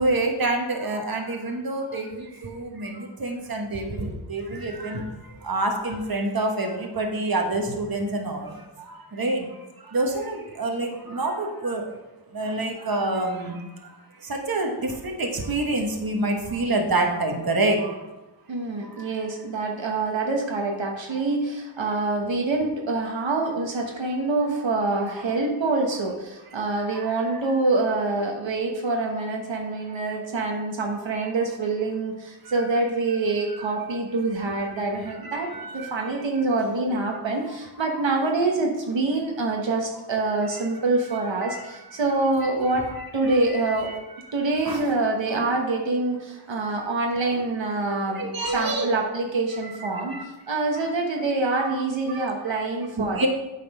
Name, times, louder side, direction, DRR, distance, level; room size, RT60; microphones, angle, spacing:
voice 1, 0.0-5.1 5.4-9.5 9.8-11.9 12.3-13.6 14.2-18.0 18.8-19.0 26.9-27.0 32.4-32.6 35.2-35.9 41.1-41.6 43.6-44.0 44.6-44.8 45.3-45.5 48.1-48.9 49.9-50.2 51.5-51.7 52.1-52.6 53.0-53.3, right 2 dB, 50° right, 2 dB, 1.2 m, -27 dB
voice 2, 18.5-42.9 43.1-43.9 44.3-53.3, right 3 dB, 75° right, 1 dB, 1.1 m, -26 dB
8.7 x 4.1 x 5.3 m, 1.0 s
wide cardioid pair, 85°, 45 cm